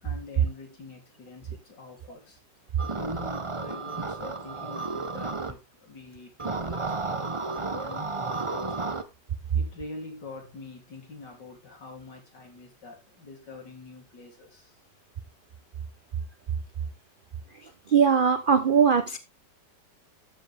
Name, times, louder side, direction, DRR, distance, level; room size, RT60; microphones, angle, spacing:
voice 1, 0.0-2.4 3.0-8.7 9.5-14.7, left 3 dB, 70° left, 3.9 m, -45 dB
sound 1, 2.8-5.5 6.4-9.0, right 3 dB, 25° right, 0.8 m, -32 dB
voice 2, 17.5-19.2, right 6 dB, 65° right, 0.5 m, -21 dB
12.5 x 7.3 x 3.6 m
omnidirectional pair, 1.9 m